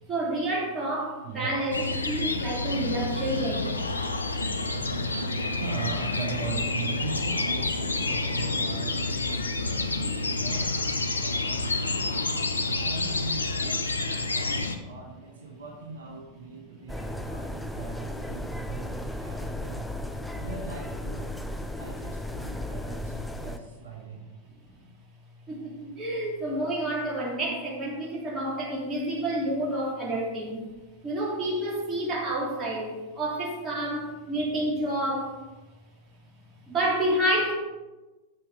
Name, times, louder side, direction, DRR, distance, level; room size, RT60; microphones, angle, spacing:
voice 1, 0.1-3.8 25.5-30.6 31.0-35.4 36.7-37.5, right 1 dB, 25° right, -4 dB, 3.0 m, -29 dB
voice 2, 1.2-1.6 5.6-9.9 10.2-10.7 11.1-12.3 12.7-19.9 20.3-21.2 21.7-24.3 30.0-30.2, right 4 dB, 65° right, -1 dB, 1.4 m, -40 dB
sound 1, 1.7-14.8, left 3 dB, 80° left, 0.7 m, -29 dB
sound 2, 16.9-23.6, left 1 dB, 5° left, 0.6 m, -35 dB
7.7 x 7.6 x 4.9 m, 1.1 s
figure-of-eight pair, 90°, 0 cm